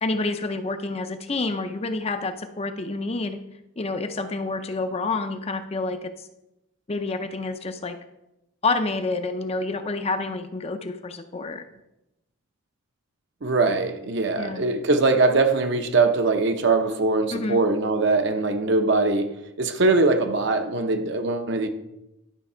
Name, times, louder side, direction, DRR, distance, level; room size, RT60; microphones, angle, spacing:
voice 1, 0.0-3.4 3.8-6.3 6.9-8.0 8.6-11.6 14.4-14.6 17.3-17.6, left 3 dB, 30° left, 8 dB, 0.5 m, -28 dB
voice 2, 13.4-21.7, right 3 dB, 55° right, 7 dB, 0.8 m, -22 dB
11.0 x 4.1 x 5.5 m, 0.91 s
head